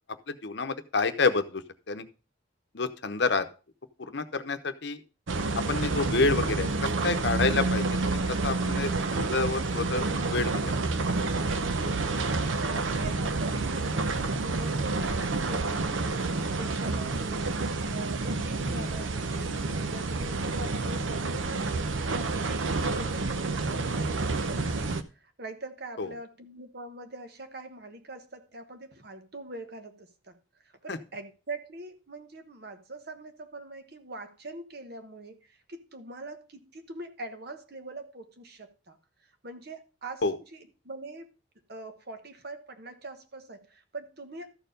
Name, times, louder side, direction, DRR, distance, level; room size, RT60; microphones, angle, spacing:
voice 1, 0.3-2.0 2.7-3.5 4.0-5.0 5.7-10.0 10.3-10.9 18.7-18.8 26.0-26.1 30.9-31.0 40.2-40.3, left 3 dB, 60° left, 0.8 m, -29 dB
sound 1, 5.3-25.0, right 3 dB, 80° right, 0.7 m, -29 dB
voice 2, 12.2-21.7 22.1-30.4 30.6-39.0 39.2-41.3 41.7-44.6, right 2 dB, 55° right, 1.3 m, -43 dB
13.0 x 4.6 x 5.1 m
head